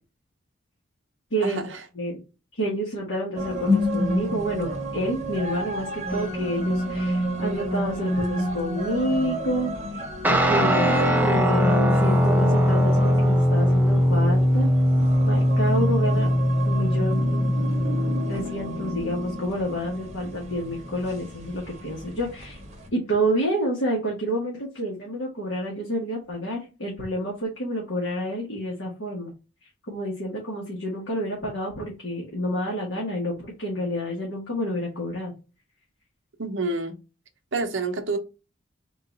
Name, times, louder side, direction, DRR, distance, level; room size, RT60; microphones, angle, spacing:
voice 1, 1.4-1.8 36.4-36.9 37.5-38.2, right 3 dB, 65° right, 0.7 m, -28 dB
voice 2, 2.5-10.0 10.3-10.9 11.2-14.7 15.2-16.3 16.7-17.4 18.3-22.6 22.9-29.3 29.9-35.3, equal, 70° left, 1.2 m, -29 dB
sound 1, 3.3-22.9, left 1 dB, 30° right, 0.8 m, -30 dB
Guitar, 10.2-18.4, equal, 10° right, 0.4 m, -20 dB
3.7 x 2.4 x 3.9 m
head